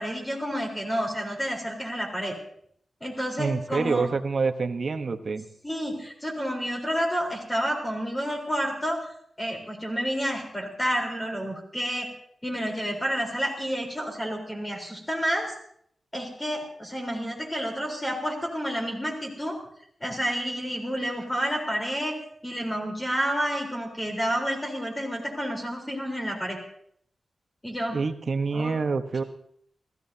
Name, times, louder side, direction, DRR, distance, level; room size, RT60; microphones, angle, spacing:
voice 1, 0.0-2.3 3.0-4.1 5.6-9.0 9.4-12.1 12.4-15.5 16.1-19.6 20.0-22.2 22.4-26.6 27.6-28.0 28.5-28.7, equal, 10° left, 1 dB, 3.9 m, -30 dB
voice 2, 3.4-5.5 27.9-29.2, right 4 dB, 50° right, 7 dB, 1.0 m, -27 dB
29.5 x 15.0 x 2.8 m, 0.67 s
wide cardioid pair, 165°, 0 cm